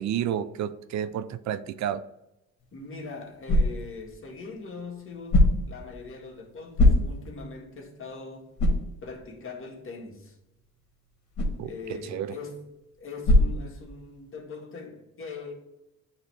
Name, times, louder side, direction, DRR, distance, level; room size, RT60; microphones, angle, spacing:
voice 1, 0.0-2.0 11.6-12.4, right 9 dB, 65° right, 0.5 m, -31 dB
sound 1, 2.6-14.3, left 1 dB, 70° left, 1.4 m, -27 dB
voice 2, 2.7-8.5 9.0-10.4 11.6-12.7 13.0-15.5, left 4 dB, 45° left, 1.7 m, -41 dB
9.1 x 3.1 x 3.3 m
cardioid pair, 90°, 30 cm